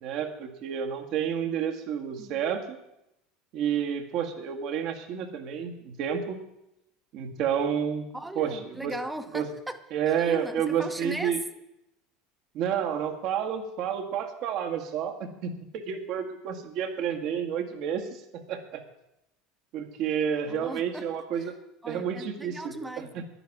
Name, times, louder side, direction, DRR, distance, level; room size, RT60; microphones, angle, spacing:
voice 1, 0.0-2.8 3.5-6.4 7.1-8.1 8.3-9.0 9.3-9.4 9.9-11.4 12.5-18.8 19.7-21.5 21.8-22.7, right 8 dB, 60° right, 1.7 m, -30 dB
voice 2, 8.1-9.8 10.1-11.4 20.5-21.5 21.8-23.2, right 1 dB, 10° right, 1.0 m, -38 dB
10.5 x 10.0 x 6.0 m
hypercardioid pair, 80°, 0 cm